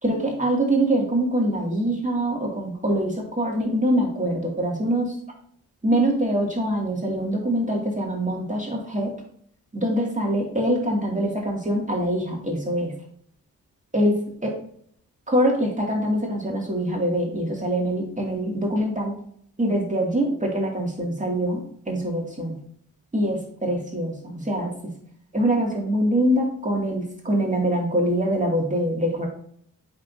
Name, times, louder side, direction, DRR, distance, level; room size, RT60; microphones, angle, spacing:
voice 1, 0.0-5.2 5.8-9.1 9.7-12.9 13.9-14.6 15.3-19.1 19.6-22.6 23.1-24.7 25.3-29.3, right 1 dB, 20° right, -1 dB, 2.5 m, -24 dB
8.4 x 4.3 x 2.8 m, 0.63 s
cardioid pair, 50°, 34 cm